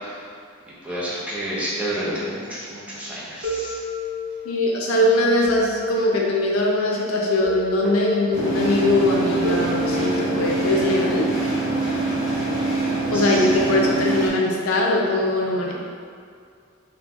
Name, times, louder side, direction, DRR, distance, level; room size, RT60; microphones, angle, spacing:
voice 1, 0.8-3.7 13.1-13.2, right 1 dB, 5° right, -9 dB, 0.6 m, -29 dB
sound 1, 3.4-4.6 5.4-6.6 7.4-8.6 9.4-10.6, left 2 dB, 75° right, 0.9 m, -30 dB
voice 2, 4.4-11.3 13.1-15.7, left 1 dB, 85° left, -2 dB, 0.5 m, -21 dB
sound 2, 8.3-14.3, right 3 dB, 35° left, 1.4 m, -24 dB
3.7 x 2.2 x 2.9 m, 2.3 s
head